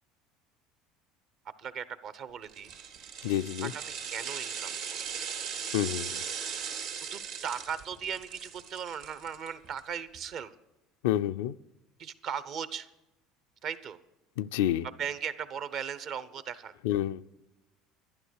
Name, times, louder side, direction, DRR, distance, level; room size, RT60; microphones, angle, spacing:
voice 1, 1.6-2.7 3.6-4.8 7.1-10.5 12.0-12.9 13.6-14.0 15.0-16.7, right 7 dB, 55° right, 14 dB, 0.9 m, -37 dB
sound 1, 2.5-9.8 10.1-10.2, right 7 dB, 75° right, 2.5 m, -38 dB
voice 2, 3.2-3.7 5.7-6.2 11.0-11.6 14.4-14.9 16.8-17.2, left 12 dB, 80° left, 11 dB, 0.4 m, -29 dB
12.0 x 11.0 x 6.4 m, 0.98 s
hypercardioid pair, 75°, 0 cm